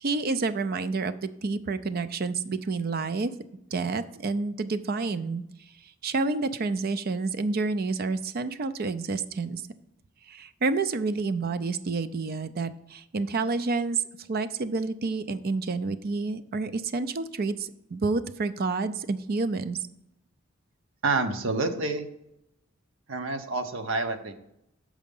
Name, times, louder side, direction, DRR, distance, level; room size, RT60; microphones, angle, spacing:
voice 1, 0.0-3.3 3.7-5.4 6.0-9.6 10.3-14.0 14.3-19.8, right 3 dB, 45° right, 13 dB, 0.5 m, -29 dB
voice 2, 21.0-22.1 23.1-24.3, right 3 dB, 65° right, 6 dB, 0.9 m, -28 dB
7.5 x 4.9 x 5.3 m, 0.83 s
head